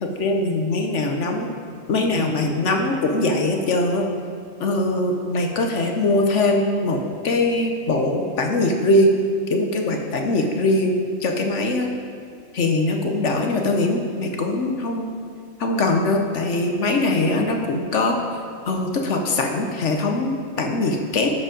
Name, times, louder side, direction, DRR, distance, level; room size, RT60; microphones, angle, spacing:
voice 1, 0.0-1.5 1.9-4.0 4.6-9.1 9.5-11.9 12.5-15.1 15.6-18.2 18.7-21.3, left 2 dB, 60° left, 3 dB, 1.0 m, -22 dB
12.5 x 5.0 x 5.1 m, 2.3 s
omnidirectional pair, 1.5 m